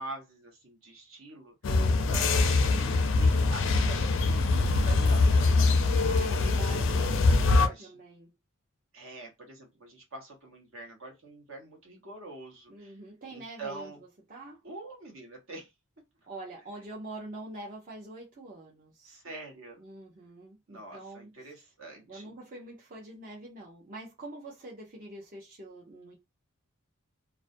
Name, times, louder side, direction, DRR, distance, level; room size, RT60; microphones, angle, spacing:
voice 1, 0.0-1.5 2.1-5.8 6.4-7.0 7.6-7.9 8.9-12.9 13.3-14.0 14.6-15.7 19.0-19.8 20.7-22.3, right 2 dB, 65° right, 1.0 m, -45 dB
sound 1, 1.6-7.7, left 3 dB, 60° left, 0.4 m, -23 dB
voice 2, 6.0-8.3 12.7-14.6 16.3-19.2 19.8-21.6 22.1-26.1, right 2 dB, 40° right, 0.6 m, -45 dB
2.4 x 2.1 x 2.5 m
head